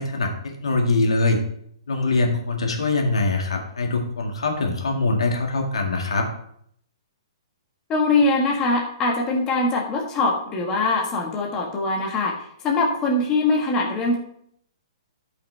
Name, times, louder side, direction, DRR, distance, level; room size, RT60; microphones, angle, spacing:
voice 1, 0.0-1.4 1.9-6.3, left 3 dB, 90° left, 2 dB, 2.0 m, -23 dB
voice 2, 7.9-12.3 12.6-14.2, left 2 dB, 25° left, -1 dB, 1.6 m, -22 dB
13.0 x 5.7 x 3.4 m, 0.68 s
hypercardioid pair, 140°, 3 cm